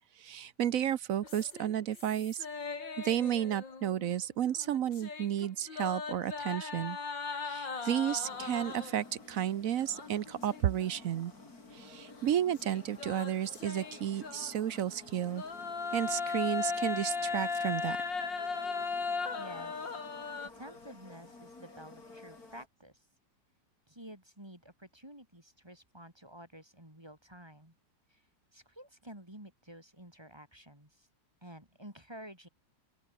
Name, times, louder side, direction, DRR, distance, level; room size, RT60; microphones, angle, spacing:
voice 1, 0.2-2.5 3.0-7.0 7.4-11.3 11.7-15.4 15.9-18.0, right 10 dB, 60° right, 1.0 m, -32 dB
sound 1, 1.2-4.1 4.4-9.1 9.9-10.9 11.3-11.4 12.6-14.8 15.3-20.5, left 4 dB, 85° left, 3.9 m, -38 dB
sound 2, 8.2-22.7, left 3 dB, 55° left, 5.0 m, -53 dB
voice 2, 19.4-19.8 20.5-22.9 23.9-27.7 28.1-28.2 28.5-31.1 31.4-32.5, equal, 15° right, 5.6 m, -51 dB
open air
omnidirectional pair, 1.9 m